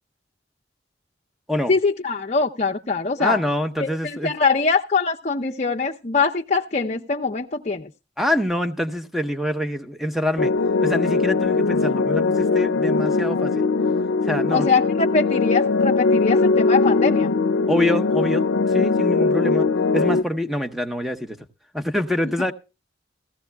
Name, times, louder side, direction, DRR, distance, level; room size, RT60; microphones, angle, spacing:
voice 1, 1.7-3.4 3.8-7.9 14.5-17.3, left 4 dB, 40° left, 0.6 m, -23 dB
voice 2, 3.2-4.3 8.2-10.5 10.8-13.7 14.3-14.7 17.7-19.7 19.9-21.4 21.7-22.5, left 1 dB, ahead, 0.8 m, -25 dB
sound 1, 10.4-20.2, left 4 dB, 90° left, 0.5 m, -20 dB
17.0 x 15.0 x 2.2 m
head